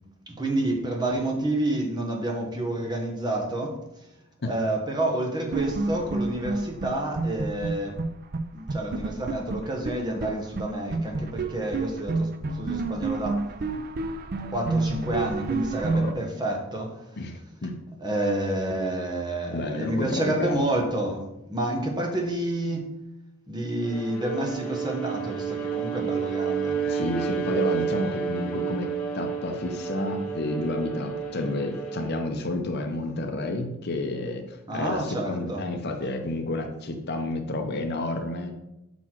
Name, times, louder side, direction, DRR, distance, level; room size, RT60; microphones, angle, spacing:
voice 1, 0.3-3.8 4.4-8.0 8.5-13.4 14.5-17.0 18.0-22.9 23.5-26.8 34.7-35.6, right 1 dB, 20° right, 1 dB, 0.9 m, -29 dB
sound 1, 5.5-8.1 8.3-8.4 8.7-10.3 10.6-10.7 10.9-16.1, right 3 dB, 45° right, 0.4 m, -29 dB
voice 2, 17.2-17.7 19.5-20.6 26.8-38.5, left 2 dB, 50° left, 5 dB, 0.7 m, -30 dB
Bowed string instrument, 23.8-32.2, right 7 dB, 5° left, 1.2 m, -30 dB
6.0 x 4.2 x 4.4 m, 0.88 s
head